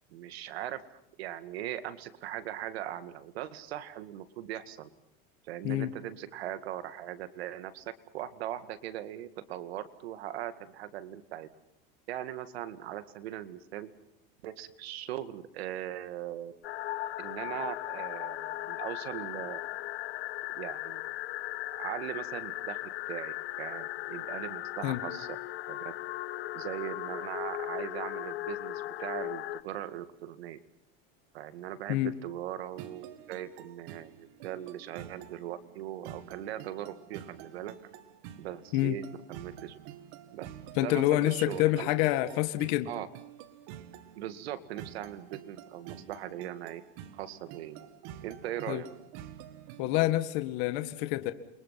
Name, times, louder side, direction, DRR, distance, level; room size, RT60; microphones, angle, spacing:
voice 1, 0.1-4.9 5.4-11.5 12.1-13.9 14.4-16.5 17.2-19.6 20.5-21.0 21.8-25.3 25.7-25.9 26.5-30.6 31.3-37.8 38.4-39.0 39.3-39.8 40.3-40.5 40.7-42.1 42.9-43.1 44.2-46.8 47.1-47.9 48.2-48.9, right 12 dB, 85° right, 11 dB, 2.1 m, -40 dB
sound 1, 16.6-29.6, left 16 dB, 80° left, 1.2 m, -37 dB
sound 2, 32.8-50.2, right 10 dB, 60° right, 2.1 m, -48 dB
voice 2, 40.7-42.9 48.7-48.8 49.8-51.3, left 16 dB, 55° left, 10 dB, 1.7 m, -27 dB
29.0 x 23.5 x 5.8 m, 0.79 s
supercardioid pair, 145°, 30 cm